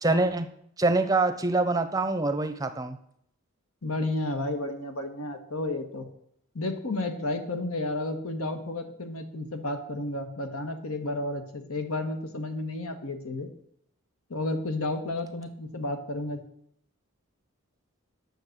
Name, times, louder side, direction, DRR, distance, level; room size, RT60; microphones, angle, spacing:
voice 1, 0.0-0.5 0.8-3.0, right 2 dB, 15° right, 10 dB, 0.6 m, -25 dB
voice 2, 3.8-6.0 6.5-13.5 14.3-16.4, left 2 dB, 80° left, 7 dB, 1.4 m, -32 dB
9.7 x 6.6 x 6.6 m, 0.72 s
head